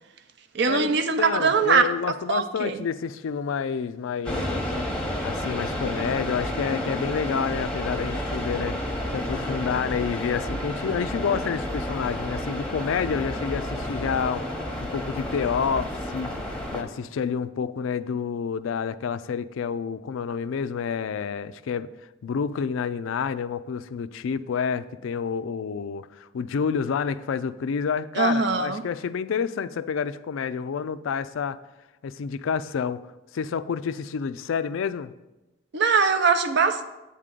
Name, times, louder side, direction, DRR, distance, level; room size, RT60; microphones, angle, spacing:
voice 1, 0.5-1.9 2.3-2.8 28.1-28.8 35.7-36.8, right 5 dB, 55° right, 0.6 m, -22 dB
voice 2, 1.2-4.6 5.2-8.8 9.1-16.3 16.7-21.9 22.2-31.6 32.0-33.0 33.3-35.1, left 6 dB, 70° left, 0.3 m, -29 dB
sound 1, 4.2-16.8, left 1 dB, 5° left, 0.8 m, -30 dB
8.3 x 3.7 x 6.7 m
head